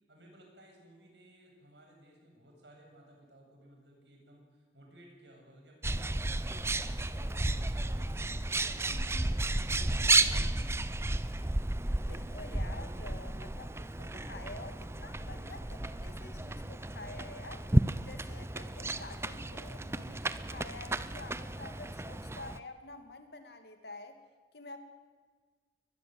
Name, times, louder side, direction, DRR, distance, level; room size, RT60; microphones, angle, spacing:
voice 1, 0.1-9.7 10.1-10.6, right 1 dB, 75° right, 1 dB, 7.9 m, -58 dB
Bird, 5.8-22.6, right 2 dB, 15° right, 0.6 m, -33 dB
voice 2, 12.1-17.7 18.0-24.2 24.5-24.8, left 2 dB, 65° left, 7 dB, 2.6 m, -48 dB
23.0 x 20.5 x 8.0 m, 1.5 s
head